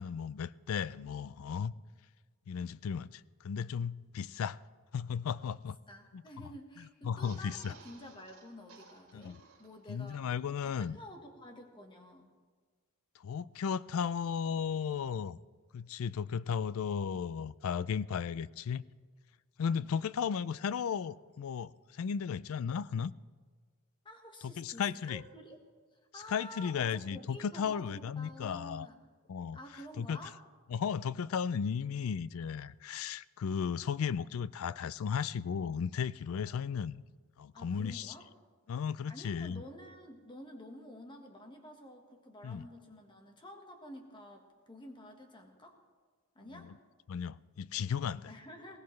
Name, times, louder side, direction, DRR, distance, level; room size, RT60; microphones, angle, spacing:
voice 1, 0.0-1.7 2.5-4.6 4.9-5.8 6.1-6.2 6.8-7.7 9.1-9.4 9.9-11.0 13.2-15.4 15.7-18.8 19.6-23.1 24.4-25.2 26.1-28.9 29.3-29.6 30.0-30.2 30.7-37.0 37.4-38.1 38.7-39.6 42.4-42.7 46.5-46.7 47.1-48.3, left 7 dB, 65° left, 0.3 m, -35 dB
voice 2, 1.0-1.8 5.9-10.3 10.6-12.3 19.8-20.2 24.0-25.6 25.9-29.0 29.5-30.4 36.4-36.6 37.5-38.3 39.1-45.8 46.3-46.7 48.3-48.8, equal, 20° left, 1.3 m, -50 dB
sound 1, 7.1-10.1 10.4-10.5 10.8-10.9, right 4 dB, 70° right, 3.3 m, -57 dB
20.0 x 17.0 x 3.2 m
head